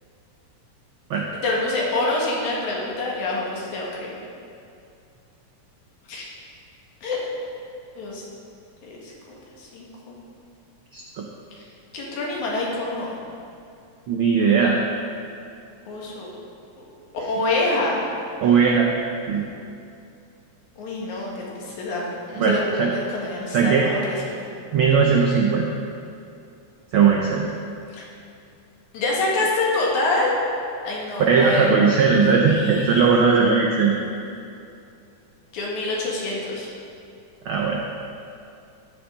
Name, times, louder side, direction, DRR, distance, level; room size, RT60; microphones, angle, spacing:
voice 1, 1.3-4.1 6.1-6.3 7.0-7.2 8.0-8.2 8.8-10.2 11.5-11.6 11.9-13.2 15.9-16.3 17.3-18.0 20.8-24.4 27.9-28.1 28.9-30.3 30.8-31.6 32.4-33.1 35.5-36.7, left 2 dB, 80° left, -4 dB, 3.1 m, -26 dB
voice 2, 14.1-14.8 18.4-18.9 19.3-19.5 22.3-22.9 23.5-23.9 24.7-25.7 26.9-27.5 31.2-33.9 37.4-37.8, right 5 dB, 85° right, 0 dB, 1.1 m, -18 dB
14.0 x 7.2 x 3.8 m, 2.6 s
omnidirectional pair, 3.3 m